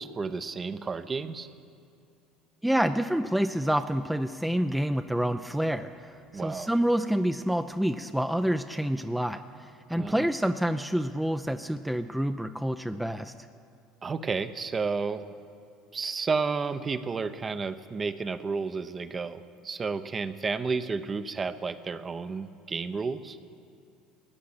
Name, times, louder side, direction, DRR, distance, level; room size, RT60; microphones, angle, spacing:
voice 1, 0.0-1.5 6.3-6.7 10.0-10.3 14.0-15.3 15.9-23.4, right 4 dB, 30° right, 11 dB, 0.8 m, -32 dB
voice 2, 2.6-13.3, equal, 5° right, 8 dB, 0.5 m, -28 dB
15.5 x 9.4 x 8.7 m, 2.6 s
hypercardioid pair, 65°, 0 cm